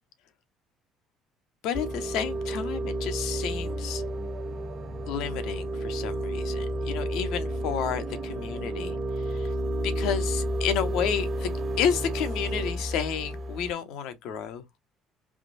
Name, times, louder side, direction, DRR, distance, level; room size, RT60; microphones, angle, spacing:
voice 1, 1.6-4.0 5.1-9.5 9.8-11.5 11.8-14.6, left 8 dB, 70° left, 0.8 m, -31 dB
sound 1, 1.7-13.7, right 1 dB, 40° right, 1.2 m, -31 dB
3.6 x 2.5 x 4.0 m
hypercardioid pair, 65°, 0 cm